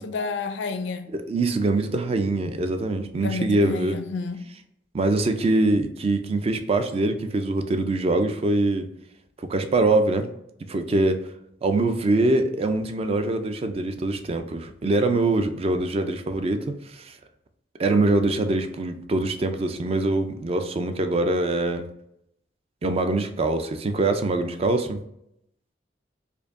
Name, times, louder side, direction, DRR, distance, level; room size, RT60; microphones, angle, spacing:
voice 1, 0.0-1.1 3.2-4.4, left 4 dB, 80° left, 0.4 m, -30 dB
voice 2, 1.1-4.0 4.9-8.9 9.4-10.3 10.7-11.3 11.6-17.2 17.8-21.9 22.8-25.0, right 2 dB, 35° right, 0.3 m, -23 dB
4.5 x 2.6 x 2.5 m
head